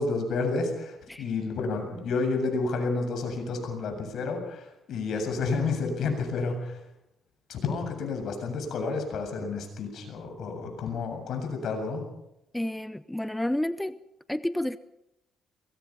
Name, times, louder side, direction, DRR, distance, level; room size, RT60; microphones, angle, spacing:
voice 1, 0.0-6.8 7.5-12.1, left 4 dB, 70° left, 5 dB, 7.5 m, -30 dB
voice 2, 12.5-14.0 14.3-14.8, left 1 dB, 5° left, 13 dB, 0.8 m, -30 dB
23.5 x 22.0 x 6.0 m, 0.84 s
cardioid pair, 90°, 0 cm